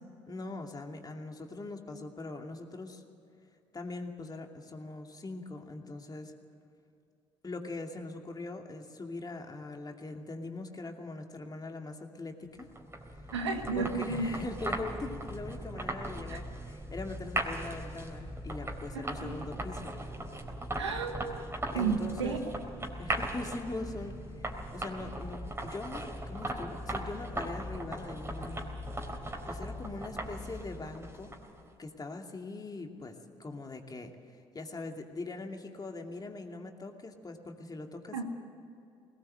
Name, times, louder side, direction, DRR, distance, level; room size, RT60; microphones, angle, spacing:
voice 1, 0.3-3.0 3.7-6.3 7.4-12.7 13.7-19.9 21.7-22.4 23.0-28.7 29.5-31.4 31.8-38.2, left 3 dB, 30° left, 3 dB, 2.6 m, -41 dB
sound 1, 12.6-31.6, right 1 dB, 20° right, 3.9 m, -39 dB
voice 2, 13.3-14.3 16.3-16.4 18.9-19.3 20.8-21.4 21.7-22.4 38.1-38.2, right 5 dB, 90° right, 5 dB, 1.7 m, -32 dB
20.5 x 19.0 x 7.9 m, 2.6 s
hypercardioid pair, 50°, 14 cm